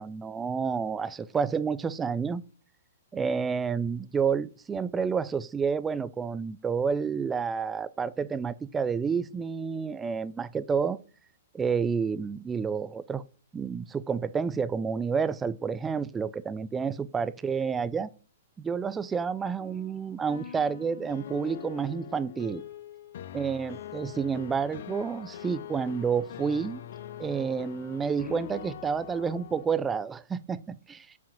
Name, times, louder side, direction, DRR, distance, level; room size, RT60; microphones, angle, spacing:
voice 1, 0.0-2.4 3.1-11.0 11.5-13.2 13.5-18.1 18.6-22.6 23.3-26.8 27.2-31.1, right 6 dB, 10° right, 0.4 m, -29 dB
sound 1, 19.6-29.7, left 11 dB, 60° left, 0.5 m, -43 dB
5.9 x 5.0 x 5.2 m
hypercardioid pair, 150°, 0 cm